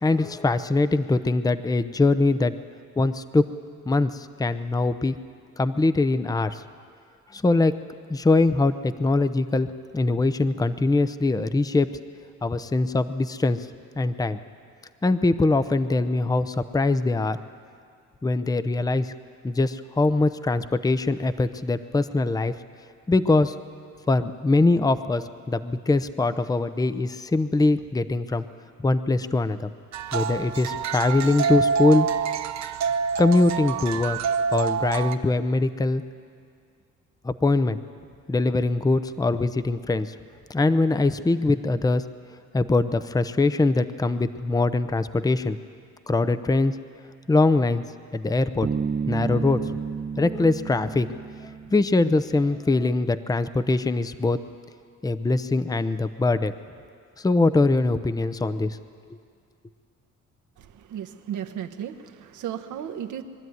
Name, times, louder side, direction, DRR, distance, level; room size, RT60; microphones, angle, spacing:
voice 1, 0.0-2.5 3.0-3.4 3.9-5.2 5.6-6.6 7.3-7.7 8.1-11.9 12.4-13.6 14.0-14.4 15.0-17.4 18.2-19.1 19.4-22.5 23.1-23.5 24.1-28.4 28.8-29.7 30.1-32.1 33.2-34.2 34.5-36.0 37.2-37.8 38.3-40.1 40.5-42.0 42.5-45.6 46.1-46.8 47.3-47.8 48.1-48.7 49.1-49.6 50.2-51.1 51.4-54.4 55.0-56.5 57.2-58.8, left 2 dB, 10° left, 12 dB, 0.7 m, -22 dB
sound 1, 29.9-35.2, right 6 dB, 65° right, 0.9 m, -26 dB
Bass guitar, 48.6-52.3, right 6 dB, 30° right, 1.1 m, -31 dB
voice 2, 60.6-63.2, right 9 dB, 80° right, 7 dB, 1.2 m, -35 dB
23.0 x 12.5 x 9.5 m, 2.2 s
cardioid pair, 90°, 30 cm